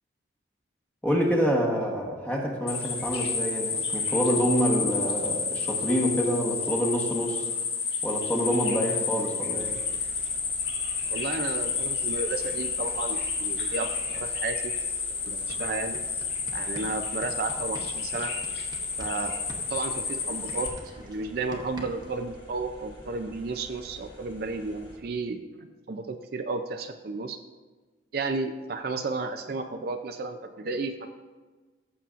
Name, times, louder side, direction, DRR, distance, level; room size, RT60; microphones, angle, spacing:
voice 1, 1.0-7.5 8.0-9.7, equal, 10° left, -1 dB, 1.1 m, -27 dB
sound 1, 2.7-20.7, left 5 dB, 60° left, 2.0 m, -30 dB
sound 2, 9.5-25.0, equal, 25° left, 1.6 m, -49 dB
voice 2, 11.1-14.7 15.3-16.1 16.5-18.3 19.0-19.4 19.7-20.7 21.0-27.4 28.1-31.1, right 3 dB, 55° right, 7 dB, 0.4 m, -33 dB
sound 3, 14.9-15.0 15.3-19.2 19.5-22.2, right 1 dB, 20° right, 0.9 m, -45 dB
14.5 x 7.0 x 2.5 m, 1.3 s
head